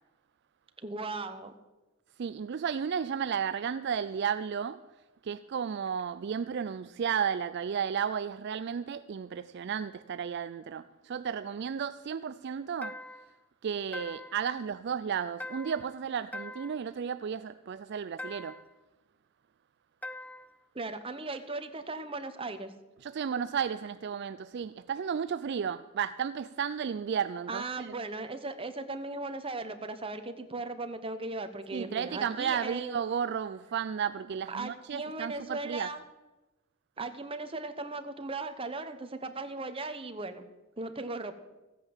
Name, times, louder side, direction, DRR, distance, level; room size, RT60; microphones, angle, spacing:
voice 1, 0.8-1.5 20.7-22.7 27.5-33.0 34.5-36.0 37.0-40.4 40.8-41.3, right 3 dB, 25° right, 1.0 m, -37 dB
voice 2, 2.2-4.8 5.2-13.0 13.6-18.6 23.0-27.9 31.7-35.9, right 7 dB, 55° right, 0.3 m, -33 dB
sound 1, 12.8-13.4 13.9-14.5 15.4-15.9 16.3-16.9 18.2-18.7 20.0-20.6, left 2 dB, 5° left, 0.5 m, -42 dB
15.0 x 9.1 x 7.2 m
head